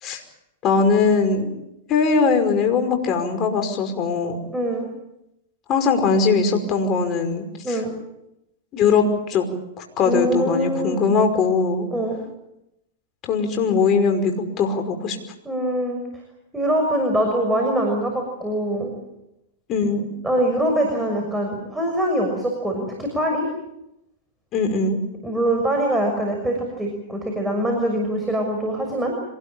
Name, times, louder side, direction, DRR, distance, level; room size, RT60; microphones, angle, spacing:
voice 1, 0.6-1.5 1.9-4.4 5.7-7.8 8.7-9.5 9.8-11.9 13.2-15.2 19.7-20.1 24.5-25.0, left 5 dB, 35° left, 5 dB, 5.3 m, -20 dB
voice 2, 4.5-4.9 7.6-7.9 10.0-11.0 11.9-12.2 15.4-16.0 16.5-18.9 20.2-23.5 25.2-29.1, right 1 dB, 5° right, 2 dB, 6.4 m, -23 dB
26.0 x 19.5 x 8.8 m, 0.86 s
hypercardioid pair, 120°, 0 cm